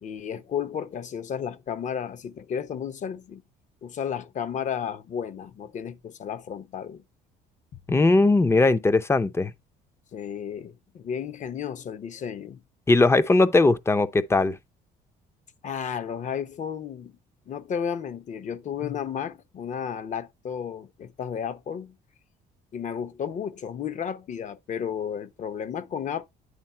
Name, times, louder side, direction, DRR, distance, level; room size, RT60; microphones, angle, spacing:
voice 1, 0.0-3.4 3.8-7.0 10.1-12.6 15.6-17.2 17.5-22.0 22.7-26.2, left 8 dB, 45° left, 0.9 m, -33 dB
voice 2, 7.9-9.5 12.9-14.6, left 3 dB, 15° left, 0.6 m, -19 dB
9.9 x 3.6 x 4.4 m
cardioid pair, 110°, 17 cm